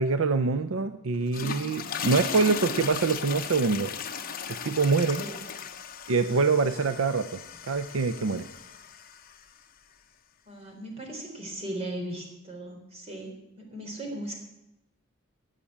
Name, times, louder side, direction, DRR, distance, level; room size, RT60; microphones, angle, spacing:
voice 1, 0.0-3.9 4.6-5.2 6.1-7.4 7.7-8.5, right 4 dB, 70° right, 11 dB, 0.6 m, -25 dB
sound 1, 1.1-9.5, left 7 dB, 40° left, 0.9 m, -37 dB
voice 2, 10.5-14.3, right 1 dB, 30° right, 2 dB, 3.6 m, -37 dB
17.0 x 6.6 x 8.5 m, 0.90 s
head